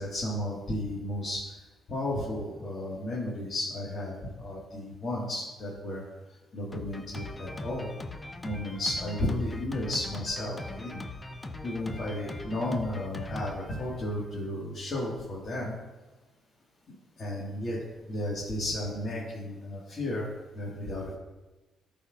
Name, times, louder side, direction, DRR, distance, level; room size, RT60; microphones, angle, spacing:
voice 1, 0.0-1.5 1.9-6.0 6.5-7.9 8.4-11.0 11.6-15.7 17.2-17.8 18.1-20.3 20.5-21.1, left 1 dB, 45° left, -6 dB, 1.7 m, -33 dB
Drum kit, 6.7-14.5, left 2 dB, 25° left, 0.6 m, -41 dB
12.5 x 4.3 x 2.5 m, 1.1 s
cardioid pair, 90°, 0 cm